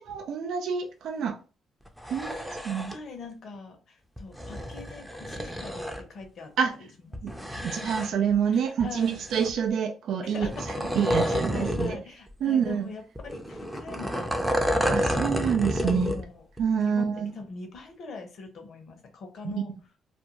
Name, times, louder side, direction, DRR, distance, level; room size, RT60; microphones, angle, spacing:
voice 1, 0.0-1.4 2.1-2.9 6.6-6.7 7.2-7.3 7.6-10.5 10.9-12.0 12.4-12.9 14.9-16.1 16.6-17.3 19.4-19.5, right 7 dB, 75° right, 3 dB, 0.3 m, -27 dB
sound 1, 1.9-3.0 4.2-6.0 7.1-8.3 8.8-9.7 10.4-12.0 12.3-12.4 13.2-16.2 16.6-16.7, equal, 5° right, 0.5 m, -30 dB
voice 2, 2.0-6.5 7.5-7.8 8.5-9.2 10.2-10.6 11.2-15.2 15.8-16.4 16.9-19.7, left 3 dB, 65° left, 4 dB, 0.8 m, -42 dB
2.5 x 2.2 x 2.9 m, 0.34 s
cardioid pair, 90°, 0 cm